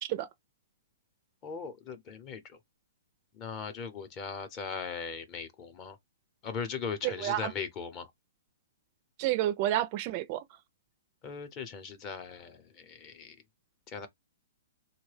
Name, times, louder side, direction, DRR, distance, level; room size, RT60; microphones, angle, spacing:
voice 1, 1.4-2.4 3.3-6.0 6.4-8.1 11.2-13.3 13.9-14.1, left 6 dB, 25° left, 0.7 m, -39 dB
voice 2, 7.0-7.5 9.2-10.4, right 13 dB, 35° right, 0.4 m, -30 dB
3.7 x 2.2 x 3.2 m
hypercardioid pair, 155°, 0 cm